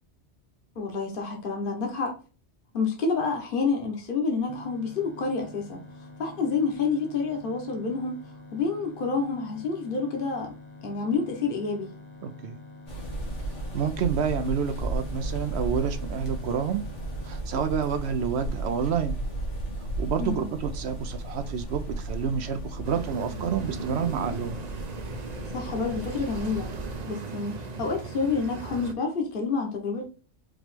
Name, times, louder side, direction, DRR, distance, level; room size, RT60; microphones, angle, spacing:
voice 1, 0.7-2.1 2.7-5.8 6.2-8.1 8.5-10.5 10.8-11.9 20.2-20.5 25.5-26.7 27.1-30.0, left 4 dB, 50° left, 1.3 m, -28 dB
sound 1, 4.5-17.4, left 3 dB, 25° left, 1.1 m, -47 dB
voice 2, 12.2-12.6 13.7-16.8 17.2-19.2 20.0-24.6, right 7 dB, 70° right, 0.8 m, -29 dB
sound 2, 12.9-27.0, right 1 dB, 90° left, 1.9 m, -34 dB
sound 3, 22.8-28.9, right 4 dB, 45° right, 0.7 m, -37 dB
5.1 x 3.0 x 3.3 m
omnidirectional pair, 1.2 m